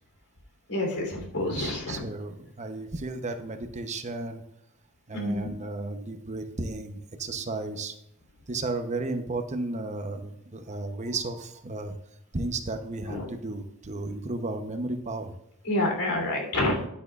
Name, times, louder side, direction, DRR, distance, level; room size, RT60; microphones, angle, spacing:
voice 1, 0.7-2.0 5.1-5.5 13.1-13.2 15.6-16.9, left 1 dB, 85° left, 1 dB, 3.3 m, -28 dB
voice 2, 1.4-4.4 5.1-8.0 8.5-12.0 12.3-15.4, right 2 dB, 30° right, 7 dB, 0.8 m, -34 dB
12.0 x 9.2 x 2.4 m, 0.78 s
head